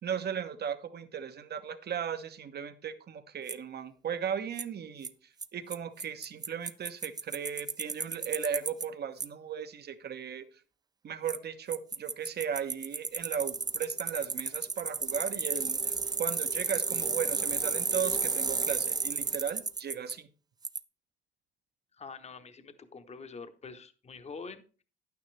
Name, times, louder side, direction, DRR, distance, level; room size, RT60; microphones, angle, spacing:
voice 1, 0.0-5.1 5.5-10.4 11.0-20.3, right 8 dB, 55° right, 10 dB, 1.1 m, -36 dB
Bicycle, 3.5-3.6 4.6-4.7 5.0-5.1 5.4-5.5 5.7-5.8 6.0-8.8 9.2-9.3 11.3-11.4 11.7-20.1 20.6-20.8, right 4 dB, 20° right, 0.5 m, -32 dB
voice 2, 21.9-24.8, left 4 dB, 35° left, 9 dB, 1.0 m, -46 dB
10.5 x 9.5 x 3.2 m, 0.37 s
cardioid pair, 90°, 20 cm